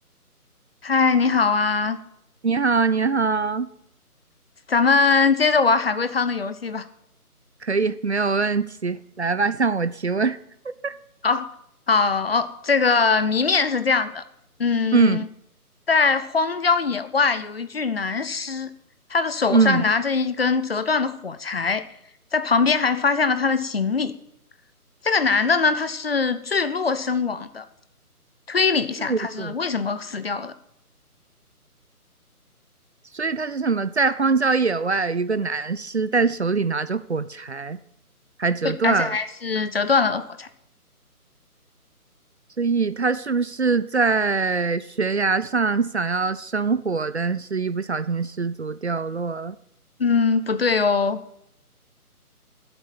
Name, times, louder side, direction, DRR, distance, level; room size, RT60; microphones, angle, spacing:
voice 1, 0.8-2.0 4.7-6.8 11.2-11.5 11.9-14.2 14.6-15.2 15.9-18.7 19.1-21.8 22.3-24.1 25.0-27.6 28.5-30.5 38.6-40.5 50.0-51.2, left 4 dB, 40° left, 12 dB, 0.9 m, -22 dB
voice 2, 2.4-3.7 7.6-10.4 10.8-10.9 14.9-15.3 19.5-19.9 29.0-29.6 33.1-37.8 38.4-39.2 42.6-49.6, right 4 dB, 45° right, 15 dB, 0.6 m, -23 dB
13.5 x 8.0 x 8.9 m, 0.76 s
figure-of-eight pair, 155°, 46 cm